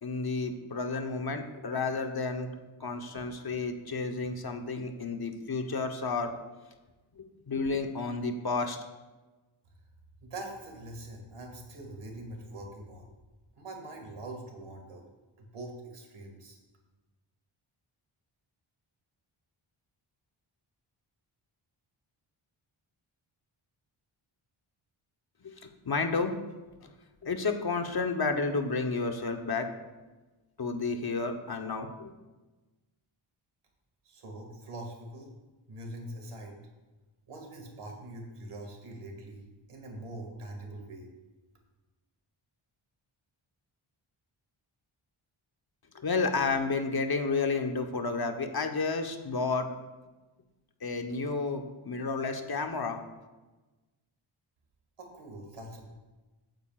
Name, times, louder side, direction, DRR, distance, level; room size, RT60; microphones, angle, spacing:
voice 1, 0.0-2.5 2.8-6.3 7.2-8.8 25.4-25.5 25.9-26.3 26.8-26.9 27.2-29.7 30.6-32.1 45.9-49.7 50.8-53.0, left 4 dB, 50° left, 5 dB, 1.1 m, -31 dB
voice 2, 10.2-13.1 13.6-15.0 15.4-16.6 34.0-35.3 35.7-36.6 37.3-41.1 55.0-55.8, right 1 dB, 90° right, 2 dB, 2.3 m, -43 dB
14.5 x 9.1 x 2.5 m, 1.2 s
cardioid pair, 65°, 50 cm